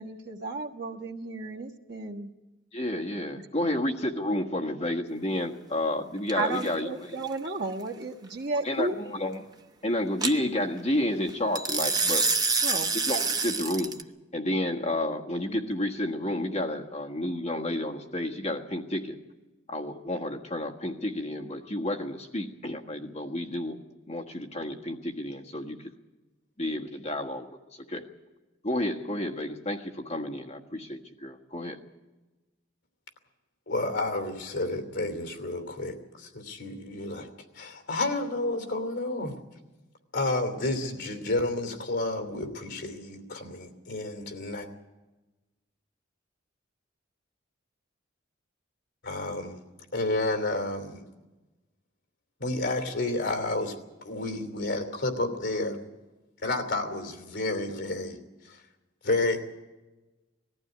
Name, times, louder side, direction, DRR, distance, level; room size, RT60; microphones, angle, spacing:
voice 1, 0.0-2.3 3.6-3.8 6.4-8.9 12.6-12.9 13.6-13.7, right 3 dB, 55° right, 2 dB, 1.3 m, -33 dB
voice 2, 2.7-7.2 8.6-9.4 9.8-12.3 12.9-13.9 14.3-19.2 19.7-23.8 24.1-25.9 26.6-27.5 27.9-28.0 28.6-31.8, left 1 dB, 35° left, 1 dB, 1.5 m, -31 dB
sound 1, 6.3-6.7 10.2-10.3 11.5-14.0, right 4 dB, 20° right, 0.7 m, -27 dB
voice 3, 33.7-37.3 37.5-39.3 40.1-44.7 49.0-49.6 49.9-51.0 52.4-55.8 56.4-58.2 58.4-58.6 59.0-59.5, left 2 dB, 60° left, 6 dB, 2.9 m, -30 dB
20.0 x 14.5 x 9.2 m, 1.1 s
head